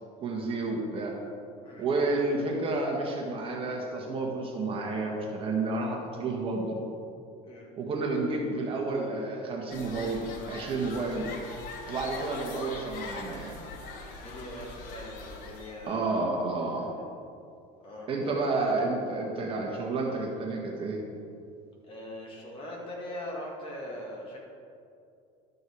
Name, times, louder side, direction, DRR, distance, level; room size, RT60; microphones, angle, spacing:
voice 1, 0.2-1.1 1.8-6.8 7.8-11.3 11.9-13.6 15.9-16.9 18.1-21.0, right 3 dB, 35° right, 0 dB, 1.4 m, -30 dB
sound 1, 9.7-16.0, left 3 dB, 60° left, 1.3 m, -42 dB
voice 2, 14.1-16.2 17.8-18.4 21.8-24.4, left 1 dB, 35° left, -3 dB, 2.3 m, -41 dB
12.5 x 5.4 x 4.7 m, 2.5 s
cardioid pair, 145°, 16 cm